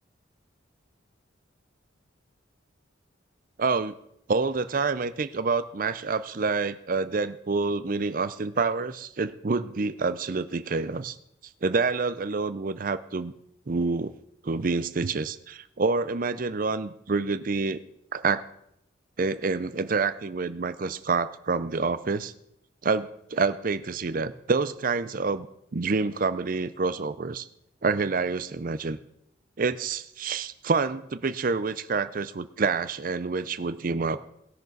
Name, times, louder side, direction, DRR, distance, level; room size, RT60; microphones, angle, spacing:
voice 1, 3.6-4.0 4.3-11.2 11.6-13.3 13.7-14.1 14.4-17.8 18.1-18.4 19.2-22.3 22.8-25.5 25.7-27.5 27.8-29.0 29.6-34.2, right 4 dB, 45° right, 14 dB, 0.5 m, -27 dB
18.5 x 6.6 x 4.0 m, 0.75 s
head